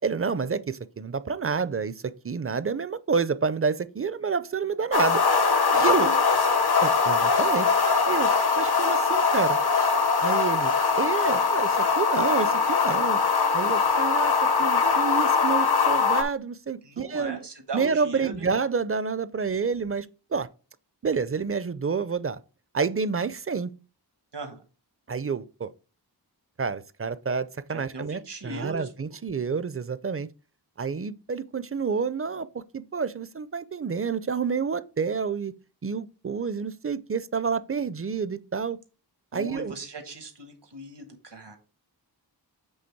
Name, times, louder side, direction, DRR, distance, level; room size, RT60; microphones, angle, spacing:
voice 1, 0.0-5.2 5.7-6.1 6.8-7.7 8.1-8.3 8.6-9.6 10.2-13.2 13.5-14.3 14.6-17.5 17.7-20.5 21.0-22.4 22.7-23.7 25.1-25.7 26.6-30.3 30.8-35.5 35.8-38.8 39.3-39.7, right 5 dB, 35° right, 0.4 m, -29 dB
sound 1, 4.9-16.2, left 5 dB, 65° left, 0.9 m, -22 dB
voice 2, 16.8-18.5 24.3-24.6 27.7-28.9 39.3-41.6, right 3 dB, 85° right, 1.2 m, -38 dB
7.8 x 3.3 x 4.5 m
wide cardioid pair, 50°, 41 cm